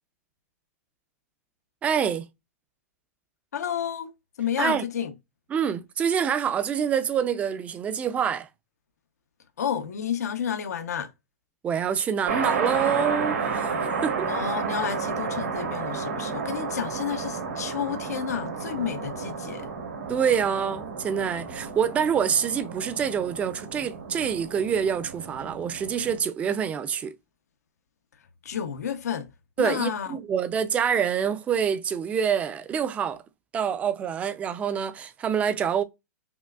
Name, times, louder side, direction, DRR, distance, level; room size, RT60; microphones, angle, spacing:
voice 1, 1.8-2.3 4.6-4.8 5.5-8.5 11.6-14.3 20.1-27.1 29.6-33.2 33.5-35.8, right 7 dB, 15° right, 0.4 m, -26 dB
voice 2, 3.5-4.1 4.4-5.1 9.6-11.1 14.3-19.7 28.4-29.3 29.6-30.2, left 8 dB, 90° left, 0.7 m, -30 dB
sound 1, 12.3-26.2, right 5 dB, 80° right, 1.6 m, -32 dB
5.6 x 2.3 x 2.2 m
hypercardioid pair, 145°, 8 cm